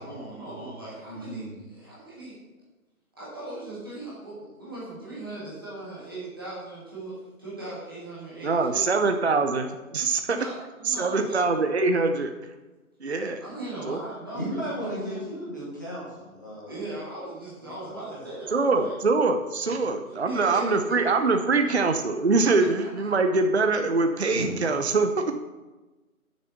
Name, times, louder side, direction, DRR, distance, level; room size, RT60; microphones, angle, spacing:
voice 1, 0.0-2.4 3.2-8.9 10.3-11.5 13.4-15.2 16.6-19.0 20.0-21.8 22.6-22.9, right 2 dB, 15° right, -8 dB, 1.4 m, -39 dB
voice 2, 1.1-1.7 14.3-16.8 17.6-17.9 19.6-19.9 22.3-22.5 24.3-24.5, equal, 15° left, -7 dB, 1.3 m, -36 dB
voice 3, 8.4-10.4 10.9-12.3 13.0-13.4 13.9-14.0 18.5-25.3, right 3 dB, 50° right, 6 dB, 0.6 m, -23 dB
6.8 x 6.7 x 5.9 m, 1.1 s
figure-of-eight pair, 175°, 43 cm